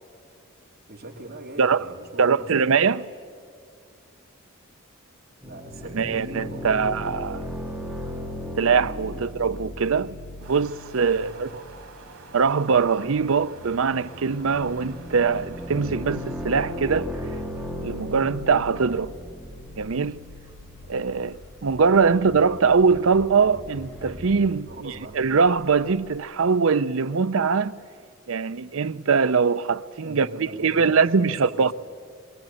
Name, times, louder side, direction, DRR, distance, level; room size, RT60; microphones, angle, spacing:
voice 1, 0.9-2.7 5.4-7.3 9.1-9.3 11.1-11.7 24.7-25.2 30.0-31.7, right 1 dB, 45° right, 3.0 m, -40 dB
voice 2, 2.2-3.0 5.9-7.4 8.6-10.2 10.5-11.5 12.3-17.1 17.8-19.1 19.8-20.2 20.9-27.8 28.3-31.7, right 5 dB, 70° right, 0.6 m, -22 dB
sound 1, 5.4-24.4, left 1 dB, ahead, 1.7 m, -37 dB
sound 2, 10.4-16.2, right 4 dB, 85° right, 3.1 m, -48 dB
sound 3, 14.4-26.2, left 1 dB, 50° left, 3.3 m, -51 dB
22.5 x 20.5 x 9.0 m
head